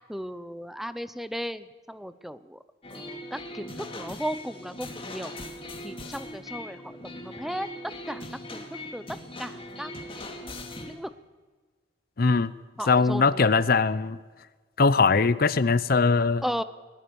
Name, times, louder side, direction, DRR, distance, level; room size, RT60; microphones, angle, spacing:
voice 1, 0.1-2.6 2.9-5.3 5.8-9.9 10.9-11.1 12.8-13.5 16.4-16.6, equal, ahead, 13 dB, 0.6 m, -36 dB
sound 1, 2.8-11.0, left 1 dB, 30° left, 2.5 m, -40 dB
voice 2, 12.2-12.5 12.9-14.2 14.8-16.4, left 4 dB, 50° left, 16 dB, 0.6 m, -21 dB
20.5 x 19.0 x 7.0 m, 1.4 s
head